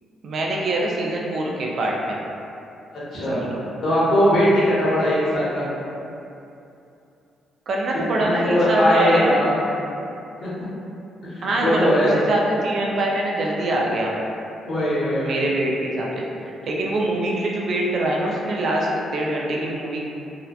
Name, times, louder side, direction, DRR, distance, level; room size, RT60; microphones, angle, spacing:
voice 1, 0.2-2.2 3.1-3.6 7.7-9.5 11.4-14.1 15.2-20.0, right 1 dB, 60° right, -2 dB, 0.4 m, -24 dB
voice 2, 3.8-5.7 8.2-9.7 10.4-10.5 11.2-12.2 14.7-15.4, equal, 60° left, -8 dB, 0.8 m, -20 dB
2.8 x 2.1 x 2.3 m, 2.7 s
cardioid pair, 90°, 0 cm